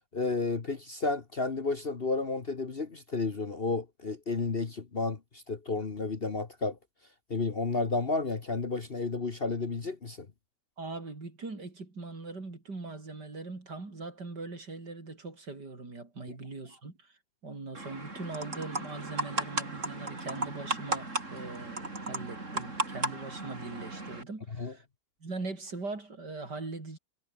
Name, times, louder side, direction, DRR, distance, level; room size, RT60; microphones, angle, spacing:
voice 1, 0.1-6.8 7.3-10.3 24.6-24.7, left 3 dB, 35° left, 1.5 m, -32 dB
voice 2, 10.8-17.1 17.4-24.8 25.2-27.0, right 3 dB, 65° right, 5.2 m, -41 dB
sound 1, 17.8-24.2, right 2 dB, 40° right, 4.5 m, -35 dB
omnidirectional pair, 1.9 m